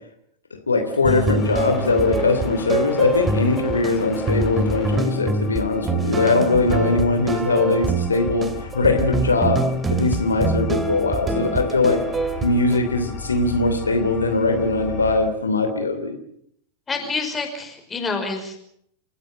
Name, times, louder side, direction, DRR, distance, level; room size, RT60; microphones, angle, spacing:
voice 1, 0.5-12.0 12.4-16.2, left 3 dB, 75° left, 6 dB, 3.1 m, -21 dB
sound 1, 1.0-12.8, right 3 dB, 15° right, 2.6 m, -25 dB
sound 2, 1.4-15.3, left 7 dB, 35° left, 4.4 m, -37 dB
voice 2, 16.9-18.6, left 4 dB, 15° left, 5 dB, 5.6 m, -27 dB
29.0 x 15.5 x 7.8 m, 0.69 s
figure-of-eight pair, 90°, 0 cm